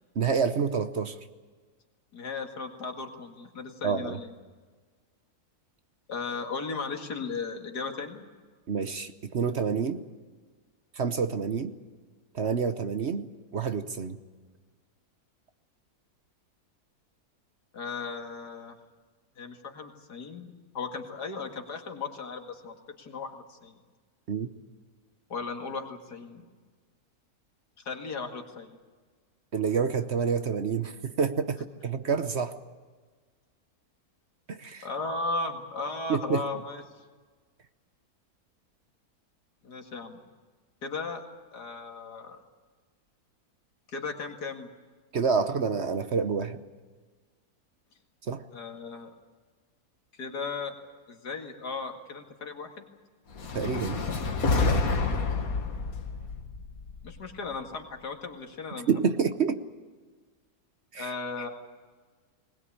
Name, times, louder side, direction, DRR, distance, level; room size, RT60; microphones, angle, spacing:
voice 1, 0.2-1.2 3.8-4.2 8.7-10.0 11.0-11.7 12.3-14.2 24.3-24.5 29.5-32.6 34.5-34.9 36.1-36.4 45.1-46.6 48.3-48.4 53.5-54.0 54.5-54.8 58.9-59.6 60.9-61.1, right 6 dB, 50° right, 10 dB, 1.0 m, -28 dB
voice 2, 2.1-4.3 6.1-8.3 17.7-18.8 19.4-23.7 25.3-26.5 27.9-28.8 34.8-36.8 39.6-40.2 40.8-41.2 41.5-42.4 43.9-44.7 48.5-49.1 50.1-50.7 51.1-52.9 57.0-58.9 60.9-61.5, left 4 dB, 85° left, 3 dB, 2.6 m, -36 dB
sound 1, 53.3-57.6, left 4 dB, 65° left, 2.0 m, -29 dB
20.5 x 20.0 x 8.6 m, 1.4 s
omnidirectional pair, 1.7 m